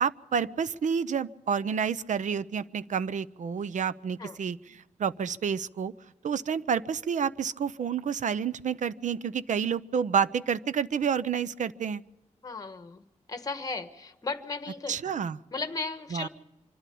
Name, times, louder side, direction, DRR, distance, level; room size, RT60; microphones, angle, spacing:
voice 1, 0.0-5.9 6.2-12.0 14.9-15.4 16.1-16.3, right 7 dB, 75° right, 16 dB, 0.6 m, -29 dB
voice 2, 12.4-15.1 15.5-16.3, left 3 dB, 30° left, 10 dB, 1.3 m, -36 dB
25.0 x 12.5 x 8.5 m, 1.0 s
wide cardioid pair, 155°, 13 cm